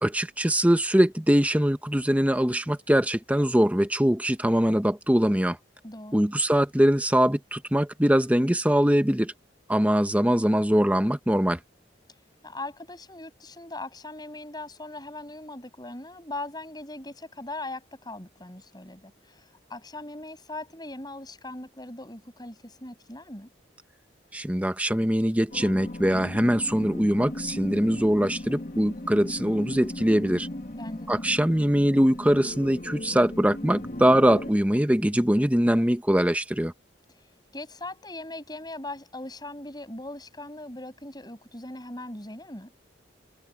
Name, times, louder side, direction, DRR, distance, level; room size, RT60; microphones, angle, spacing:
voice 1, 0.0-5.6 6.1-9.3 9.7-11.6 24.3-30.5 31.1-36.7, equal, 10° right, 1.1 m, -22 dB
voice 2, 5.8-6.3 12.4-23.5 30.7-31.2 34.4-34.5 37.5-42.7, left 2 dB, 20° left, 6.9 m, -40 dB
sound 1, 25.5-34.5, left 1 dB, 45° left, 1.7 m, -37 dB
head